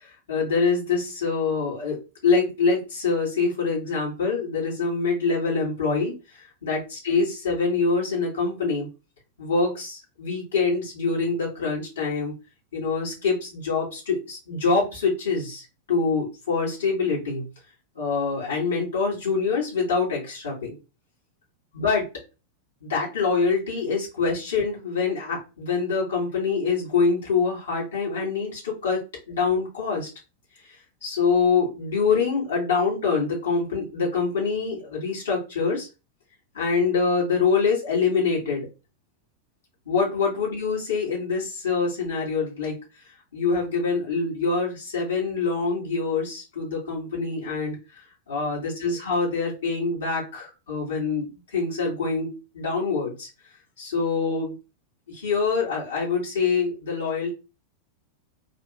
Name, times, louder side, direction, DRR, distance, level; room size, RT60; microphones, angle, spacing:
voice 1, 0.3-2.0 2.2-6.1 6.6-8.9 9.4-12.3 12.7-17.5 18.0-20.8 21.7-22.1 22.8-30.1 31.0-35.9 36.5-38.7 39.9-42.8 43.3-47.8 48.3-53.3 53.8-54.6 55.1-57.3, left 4 dB, 65° left, -4 dB, 2.2 m, -25 dB
3.9 x 2.9 x 2.6 m, 0.30 s
figure-of-eight pair, 90°, 0 cm